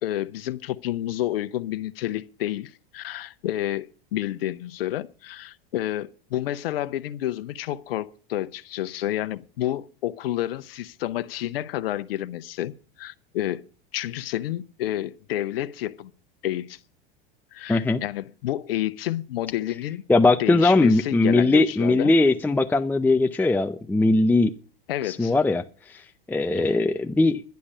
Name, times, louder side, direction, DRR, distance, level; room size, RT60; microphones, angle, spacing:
voice 1, 0.0-13.6 13.9-16.1 16.4-16.8 17.5-20.0 20.4-22.1 24.9-25.3, left 13 dB, 75° left, 0.8 m, -30 dB
voice 2, 17.7-18.0 20.1-24.5 25.0-27.4, left 2 dB, 5° left, 0.5 m, -20 dB
11.5 x 10.5 x 5.4 m
hypercardioid pair, 100°, 29 cm